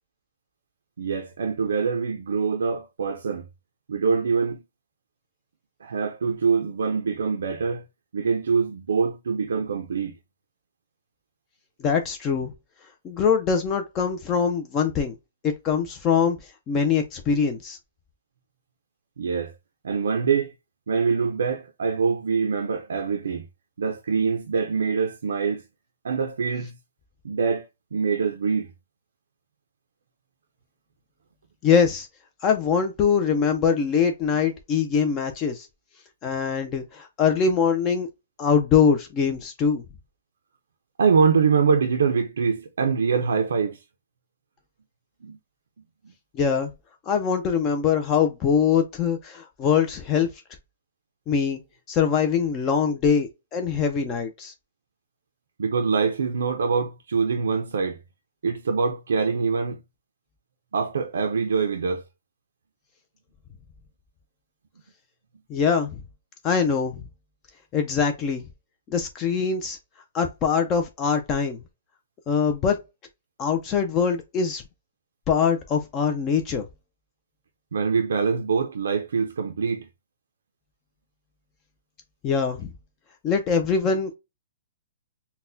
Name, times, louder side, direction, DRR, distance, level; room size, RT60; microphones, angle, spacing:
voice 1, 1.0-3.5 3.9-4.6 5.8-7.8 8.1-10.1 19.2-19.5 19.8-20.5 20.9-23.5 23.8-25.6 26.0-26.8 27.2-28.7 41.0-43.8 45.2-45.4 46.0-46.1 55.6-58.0 58.4-59.8 60.7-62.0 77.7-79.9, right 5 dB, 85° right, 0.4 m, -24 dB
voice 2, 11.8-12.5 13.0-15.1 15.4-16.4 16.7-17.8 31.6-32.1 32.4-35.7 36.2-38.1 38.4-39.8 46.3-46.7 47.1-50.3 51.3-51.6 51.9-54.5 65.5-66.0 66.4-66.9 67.7-68.4 68.9-69.8 70.1-71.6 72.3-72.8 73.4-74.6 75.3-76.6 82.2-82.7 83.2-84.1, left 6 dB, 20° left, 0.4 m, -23 dB
4.0 x 2.1 x 2.6 m
hypercardioid pair, 165°, 0 cm